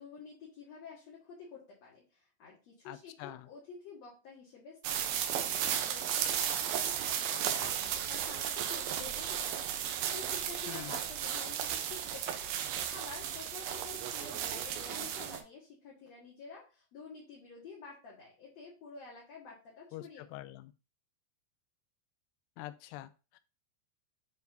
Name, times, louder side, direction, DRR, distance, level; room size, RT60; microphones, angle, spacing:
voice 1, 0.0-12.5 12.9-20.2, left 4 dB, 50° left, -5 dB, 2.5 m, -50 dB
voice 2, 2.9-3.5 10.7-11.0 19.9-20.7 22.6-23.4, left 15 dB, 85° left, 11 dB, 2.6 m, -46 dB
sound 1, 4.8-15.4, right 9 dB, 75° right, 2.5 m, -34 dB
9.4 x 4.6 x 2.7 m, 0.32 s
omnidirectional pair, 4.8 m